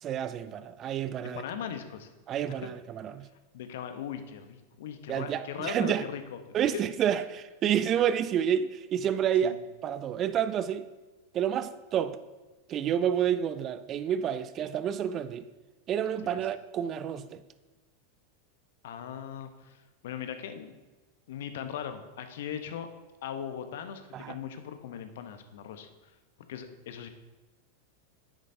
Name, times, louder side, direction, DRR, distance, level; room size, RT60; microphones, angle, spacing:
voice 1, 0.0-1.4 2.3-3.3 5.1-6.0 6.5-9.5 9.8-10.9 11.3-12.2 12.7-15.5 15.9-17.4 24.1-24.4, right 9 dB, 35° right, 0.4 m, -29 dB
voice 2, 1.3-2.1 3.5-6.8 9.4-9.6 18.8-20.8 21.3-22.9 23.2-26.1 26.5-27.1, left 8 dB, 65° left, 0.8 m, -39 dB
10.0 x 8.3 x 2.7 m
hypercardioid pair, 95°, 0 cm